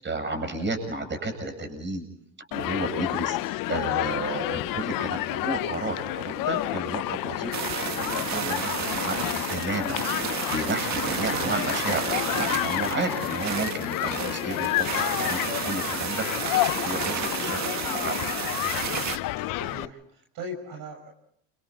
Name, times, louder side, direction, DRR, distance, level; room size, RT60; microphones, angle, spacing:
voice 1, 0.0-2.1 2.4-7.5 7.8-18.1, right 2 dB, 30° right, 6 dB, 7.8 m, -32 dB
Human group actions, 2.5-19.8, left 17 dB, 60° left, 0.8 m, -30 dB
sound 1, 7.5-19.2, right 8 dB, 45° right, 2.0 m, -32 dB
voice 2, 19.4-21.1, equal, 60° right, 3 dB, 6.6 m, -39 dB
29.5 x 26.5 x 4.3 m, 0.70 s
supercardioid pair, 105°, 38 cm